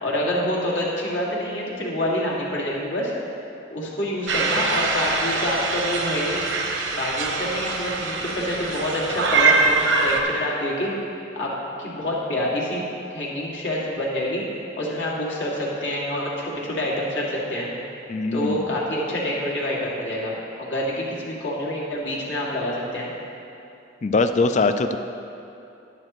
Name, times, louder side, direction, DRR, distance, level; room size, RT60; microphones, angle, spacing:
voice 1, 0.0-3.1 3.7-6.4 6.9-10.9 11.3-11.5 11.8-12.8 13.1-14.5 14.8-17.7 18.3-23.1, left 1 dB, 70° left, -5 dB, 2.2 m, -27 dB
sound 1, 4.3-10.2, right 4 dB, 75° right, 1.0 m, -23 dB
voice 2, 18.1-18.6 24.0-25.0, left 3 dB, 35° left, 9 dB, 0.3 m, -21 dB
11.5 x 10.5 x 3.1 m, 2.8 s
head